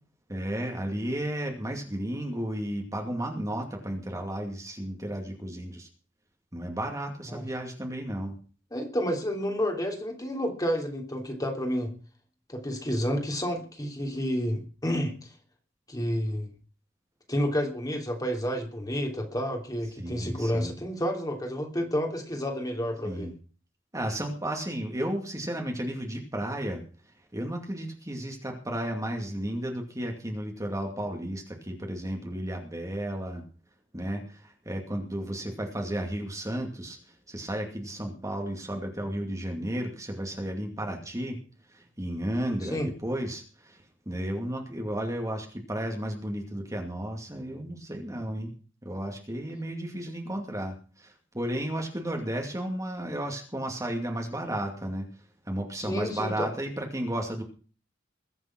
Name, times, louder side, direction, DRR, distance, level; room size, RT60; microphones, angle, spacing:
voice 1, 0.3-5.9 6.5-8.4 20.0-20.7 23.0-23.3 23.9-26.8 27.3-33.4 33.9-37.0 37.3-41.4 41.7-43.8 44.1-48.5 48.8-55.1 55.5-57.4, right 1 dB, 15° right, 2 dB, 2.5 m, -33 dB
voice 2, 8.7-11.9 12.5-15.1 15.9-16.5 17.3-23.3 42.7-42.9 55.8-56.5, equal, 20° left, 2 dB, 3.2 m, -30 dB
21.5 x 7.5 x 6.1 m, 0.39 s
head